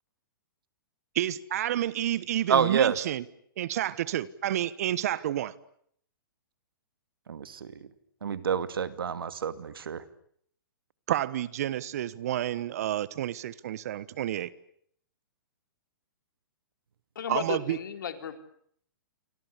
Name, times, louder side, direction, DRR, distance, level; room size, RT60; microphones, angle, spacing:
voice 1, 1.1-3.2 3.6-5.5 11.1-14.5 17.3-17.8, right 12 dB, 45° right, 1.2 m, -30 dB
voice 2, 2.5-3.0 7.3-7.7 8.2-10.0, right 7 dB, 90° right, 2.5 m, -28 dB
voice 3, 17.2-18.4, left 8 dB, 65° left, 3.8 m, -34 dB
28.5 x 24.0 x 8.4 m
hypercardioid pair, 165°, 12 cm